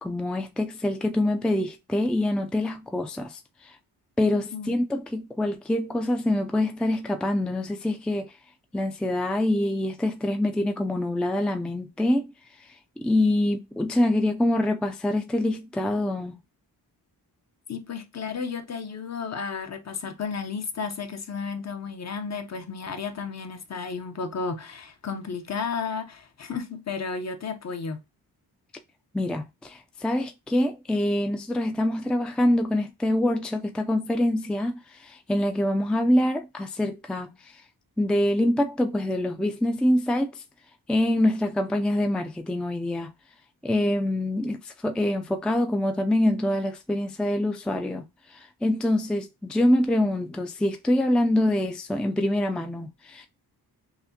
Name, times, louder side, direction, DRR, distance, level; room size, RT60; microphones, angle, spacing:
voice 1, 0.0-3.4 3.6-3.7 4.2-8.3 8.7-12.3 13.0-16.4 29.1-37.4 38.0-40.4 40.9-43.1 43.6-48.1 48.6-53.3, left 1 dB, 5° left, 0.4 m, -25 dB
voice 2, 4.3-4.8 17.7-28.0, left 5 dB, 45° left, 0.7 m, -33 dB
5.8 x 2.1 x 2.8 m
cardioid pair, 80°, 38 cm